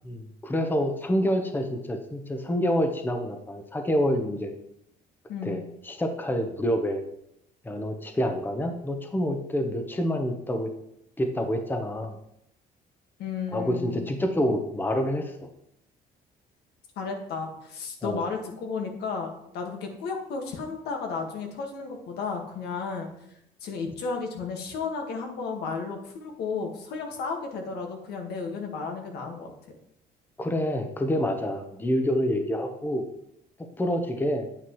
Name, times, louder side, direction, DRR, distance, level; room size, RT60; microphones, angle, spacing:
voice 1, 0.0-4.5 5.4-7.0 7.6-10.7 11.2-12.1 13.5-15.3 18.0-18.2 30.4-33.0 33.8-34.5, equal, 10° left, 5 dB, 0.9 m, -27 dB
voice 2, 5.3-5.6 13.2-14.1 16.9-23.1 23.6-29.5, left 5 dB, 75° left, 2 dB, 1.8 m, -33 dB
8.8 x 8.1 x 3.1 m, 0.78 s
cardioid pair, 110°, 17 cm